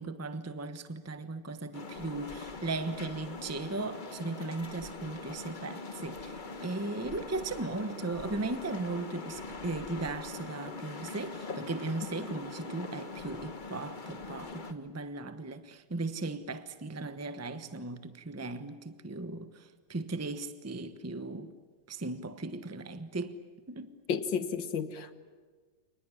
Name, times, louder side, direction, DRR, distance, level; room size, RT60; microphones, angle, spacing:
voice 1, 0.0-21.5 21.9-23.4 23.7-23.9, right 3 dB, 10° right, 0.9 m, -37 dB
sound 1, 1.7-14.7, left 3 dB, 30° left, 1.2 m, -42 dB
voice 2, 24.1-25.1, left 6 dB, 80° left, 2.1 m, -32 dB
28.0 x 20.0 x 9.9 m
omnidirectional pair, 2.0 m